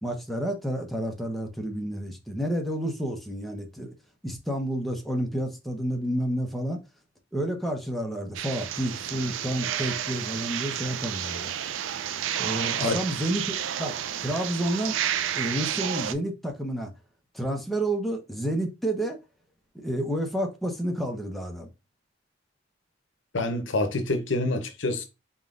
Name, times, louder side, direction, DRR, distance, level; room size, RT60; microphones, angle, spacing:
voice 1, 0.0-3.9 4.2-6.8 7.3-11.5 12.4-15.0 15.3-16.9 17.3-19.2 19.7-21.7, right 1 dB, ahead, 0.8 m, -30 dB
sound 1, 8.3-16.1, right 10 dB, 75° right, 0.4 m, -31 dB
voice 2, 23.3-25.0, left 2 dB, 70° left, 0.7 m, -27 dB
4.1 x 3.7 x 2.5 m
head